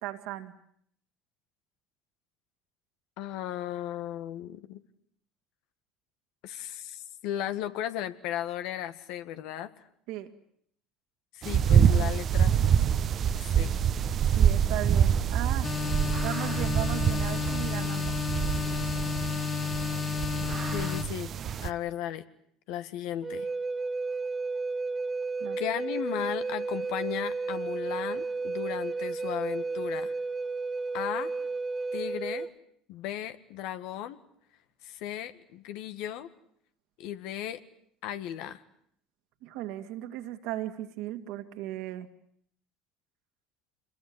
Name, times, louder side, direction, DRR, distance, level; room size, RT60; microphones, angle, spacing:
voice 1, 0.0-0.5 10.1-10.3 14.3-15.7 16.2-18.2 25.4-25.6 39.4-42.1, right 14 dB, 70° right, 7 dB, 2.5 m, -36 dB
voice 2, 3.2-4.8 6.4-9.7 11.3-12.6 13.3-13.8 20.7-21.3 21.6-22.2 22.7-23.5 25.6-30.1 30.9-31.3 31.9-32.5 32.9-34.2 34.8-36.3 37.0-37.6 38.0-38.6, left 11 dB, 65° left, 10 dB, 1.9 m, -35 dB
sound 1, 11.4-21.7, right 8 dB, 45° right, 1.2 m, -26 dB
sound 2, 15.6-21.0, left 6 dB, 35° left, 2.8 m, -31 dB
Wind instrument woodwind instrument, 23.2-32.5, right 3 dB, 25° right, 1.9 m, -32 dB
27.5 x 22.0 x 9.8 m, 0.68 s
hypercardioid pair, 65°, 0 cm